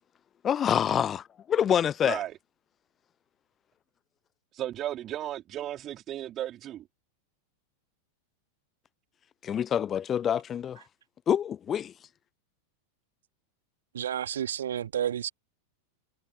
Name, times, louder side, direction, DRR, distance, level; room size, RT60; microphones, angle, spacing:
voice 1, 0.4-2.2 9.4-10.8 11.3-11.9, left 9 dB, 25° left, 0.4 m, -26 dB
voice 2, 2.0-2.3 4.5-6.8, right 12 dB, 30° right, 3.5 m, -35 dB
voice 3, 13.9-15.3, right 9 dB, 65° right, 1.7 m, -30 dB
figure-of-eight pair, 90°, 0 cm